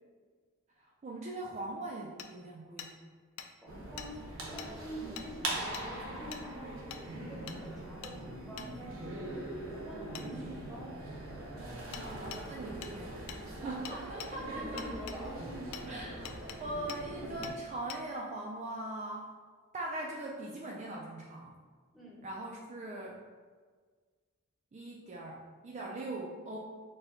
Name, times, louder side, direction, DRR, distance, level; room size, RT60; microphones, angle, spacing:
voice 1, 0.8-3.0 5.0-5.1 12.0-13.4 13.6-14.8 15.9-19.3 19.7-21.6 22.2-23.2 24.7-26.6, right 2 dB, 30° right, -2 dB, 0.3 m, -41 dB
Hammer, 2.2-2.3 2.8-2.9 3.4-3.5 4.0-4.1 4.6-4.7 5.2-5.3 5.7-5.9 6.3-6.4 6.9-7.0 7.5-7.6 8.0-8.2 8.6-8.7 10.1-10.3 11.9-12.1 12.3-12.4 12.8-12.9 13.3-13.4 13.8-14.3 14.8-15.2 15.7-15.9 16.2-16.6 16.9-17.0 17.4-17.6 17.9-18.0, left 8 dB, 70° left, 0.3 m, -44 dB
voice 2, 3.6-4.2 4.5-9.2 9.9-11.0 14.4-15.4 21.9-22.2, equal, ahead, -5 dB, 0.8 m, -46 dB
sound 1, 3.7-17.5, right 1 dB, 65° right, 0.7 m, -42 dB
4.3 x 2.2 x 3.7 m, 1.6 s
head